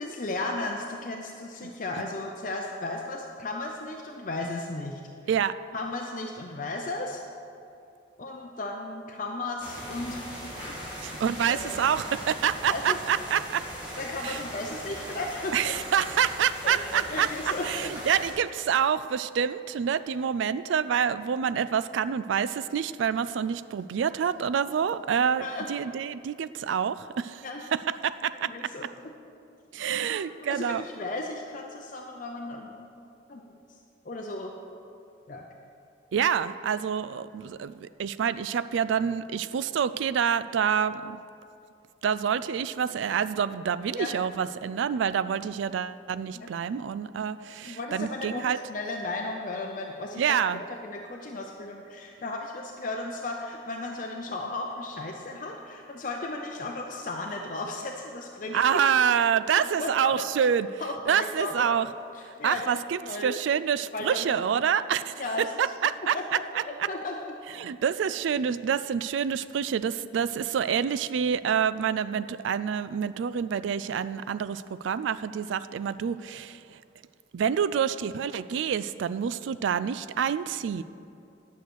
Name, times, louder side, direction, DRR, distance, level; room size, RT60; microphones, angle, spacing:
voice 1, 0.0-5.0 5.7-7.2 8.2-10.3 10.6-11.1 11.5-11.8 12.7-13.0 14.0-15.8 16.6-18.2 25.4-25.7 27.4-27.6 28.4-28.9 30.1-30.2 30.5-32.9 33.3-33.4 34.1-34.5 35.3-35.4 44.0-44.1 46.3-46.5 47.6-58.8 59.6-60.2 60.8-61.7 62.1-63.3 63.9-64.3 65.2-65.5 66.1-67.3, left 2 dB, 40° left, 1 dB, 0.6 m, -35 dB
sound 1, 9.6-18.3, equal, 20° right, 2.8 m, -39 dB
voice 2, 11.0-13.7 14.2-14.4 15.5-27.4 27.7-28.5 29.7-30.8 36.1-41.2 42.0-48.6 50.2-50.6 58.5-60.8 61.1-61.9 62.2-66.2 66.5-66.6 67.6-76.6 77.3-80.8, right 7 dB, 75° right, 15 dB, 0.3 m, -27 dB
10.5 x 6.5 x 6.2 m, 2.5 s
head